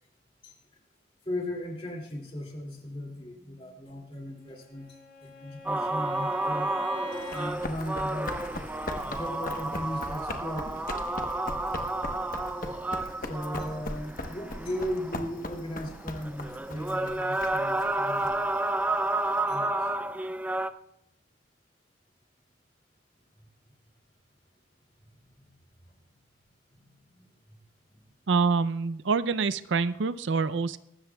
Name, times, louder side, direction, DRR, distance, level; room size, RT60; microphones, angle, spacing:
voice 1, 1.2-6.7 7.3-8.6 9.0-11.8 13.2-19.9 25.3-25.5 26.7-27.2, left 1 dB, 30° left, 1 dB, 2.5 m, -38 dB
Bowed string instrument, 4.4-7.6, left 1 dB, 65° left, 5.3 m, -43 dB
sound 1, 5.7-20.7, right 2 dB, 10° right, 0.4 m, -31 dB
Run, 7.1-19.4, left 2 dB, 45° left, 1.0 m, -40 dB
voice 2, 28.3-30.8, right 4 dB, 80° right, 15 dB, 0.5 m, -26 dB
23.0 x 13.0 x 2.3 m, 0.76 s
head